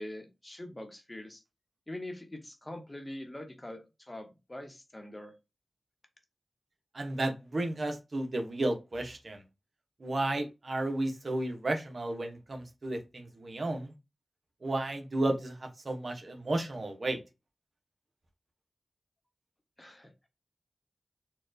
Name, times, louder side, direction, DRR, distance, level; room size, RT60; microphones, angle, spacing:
voice 1, 0.0-1.4 1.9-5.3 19.8-20.3, left 1 dB, 25° left, 1.0 m, -43 dB
voice 2, 6.9-9.4 10.0-13.9 14.6-17.2, right 2 dB, 55° right, 0.8 m, -33 dB
4.3 x 2.3 x 2.6 m
cardioid pair, 55°, 0 cm